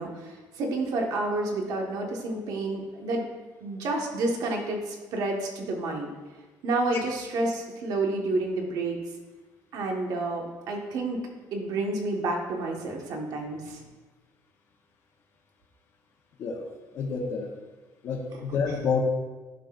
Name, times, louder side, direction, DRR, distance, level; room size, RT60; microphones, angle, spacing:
voice 1, 0.0-3.2 3.6-6.1 6.6-9.0 9.7-11.2 11.5-13.8, right 2 dB, 65° right, 0 dB, 1.5 m, -29 dB
voice 2, 16.9-17.5 18.0-19.0, left 5 dB, 50° left, -4 dB, 1.1 m, -28 dB
14.5 x 5.9 x 2.5 m, 1.3 s
cardioid pair, 140°, 7 cm